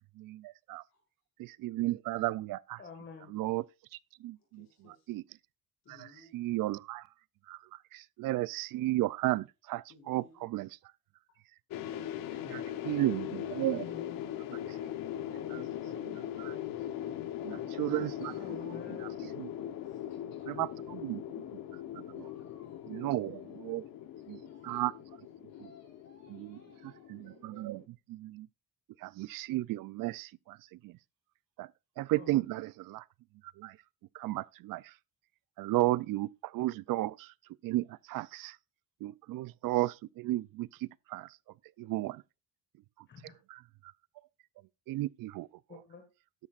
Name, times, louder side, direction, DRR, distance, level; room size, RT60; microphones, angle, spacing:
voice 1, 0.2-0.8 1.4-2.8 3.3-3.6 4.2-4.6 5.1-5.2 6.3-7.1 7.5-10.7 12.4-13.9 14.5-14.8 15.5-15.6 16.0-16.6 17.4-19.7 20.5-21.4 21.7-22.3 22.9-23.8 24.3-24.9 26.3-26.6 27.1-27.8 28.1-28.5 29.0-31.0 31.6-31.7 32.0-33.0 33.4-33.8 34.1-34.9 35.6-37.3 37.6-38.6 39.0-41.4 41.8-42.2 43.5-43.9 44.9-45.5, right 17 dB, 80° right, 0.5 m, -34 dB
voice 2, 2.8-3.3 13.7-14.2 18.4-19.1 32.2-32.3 43.1-43.4 45.7-46.0, left 5 dB, 35° left, 1.8 m, -48 dB
voice 3, 4.3-5.1 5.8-6.4 9.9-10.5 12.5-13.1 14.7-18.8 19.8-20.5 22.2-24.9 25.5-27.6, left 3 dB, 55° left, 5.4 m, -62 dB
sound 1, 11.7-27.8, left 11 dB, 90° left, 1.0 m, -40 dB
13.0 x 10.5 x 2.4 m
cardioid pair, 165°, 33 cm